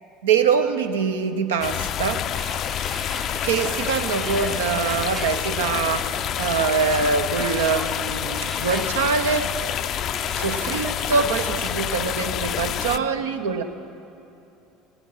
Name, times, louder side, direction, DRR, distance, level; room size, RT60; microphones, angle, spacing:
voice 1, 0.2-2.3 3.4-9.6 10.4-13.6, right 5 dB, 80° right, 8 dB, 0.7 m, -24 dB
sound 1, 1.6-13.0, left 10 dB, 50° left, 0.4 m, -28 dB
sound 2, 2.3-12.4, right 4 dB, 40° right, 0.8 m, -38 dB
17.0 x 9.3 x 5.7 m, 2.8 s
hypercardioid pair, 70°, 0 cm